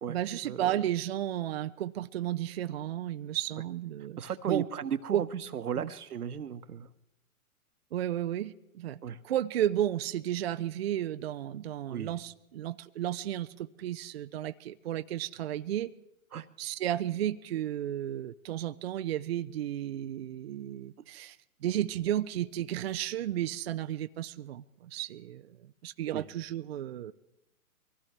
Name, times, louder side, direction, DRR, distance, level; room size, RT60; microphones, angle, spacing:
voice 1, 0.1-4.2 4.5-4.7 5.1-5.3 5.8-5.9 7.9-15.9 16.6-27.1, right 12 dB, 45° right, 10 dB, 0.5 m, -33 dB
voice 2, 4.2-5.3 5.5-6.9 9.0-9.2 11.9-12.1 16.3-16.5 26.1-26.2, right 8 dB, 85° right, 12 dB, 1.1 m, -35 dB
23.5 x 15.5 x 3.4 m, 0.90 s
hypercardioid pair, 145°, 44 cm